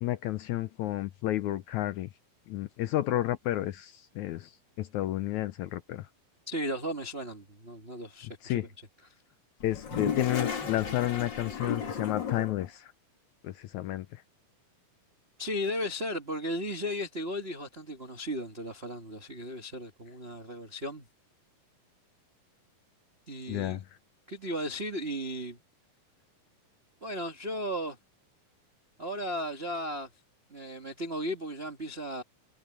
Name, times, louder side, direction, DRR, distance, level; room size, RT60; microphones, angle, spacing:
voice 1, 0.0-2.1 2.5-4.5 4.8-6.0 8.4-8.7 9.6-12.8 13.4-14.1 23.5-23.8, left 14 dB, 80° left, 1.8 m, -31 dB
voice 2, 6.5-8.7 15.4-21.0 23.3-23.8 24.3-25.6 27.0-28.0 29.0-30.1 30.5-32.2, equal, 85° right, 0.5 m, -35 dB
Toilet flush, 9.6-12.7, left 6 dB, 35° left, 2.4 m, -34 dB
omnidirectional pair, 4.0 m